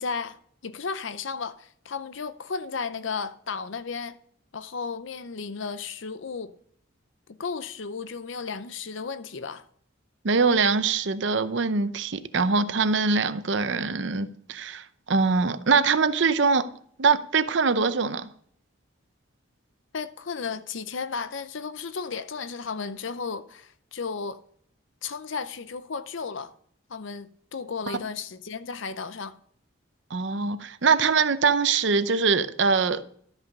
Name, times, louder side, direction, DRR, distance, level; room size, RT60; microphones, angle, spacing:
voice 1, 0.0-4.2 4.5-6.5 7.3-9.6 19.9-24.4 25.0-26.5 26.9-29.4, left 5 dB, 65° left, 0.6 m, -34 dB
voice 2, 10.2-16.7 17.0-18.3 27.9-28.0 30.1-33.0, right 4 dB, 60° right, 0.7 m, -23 dB
12.5 x 5.8 x 5.3 m
head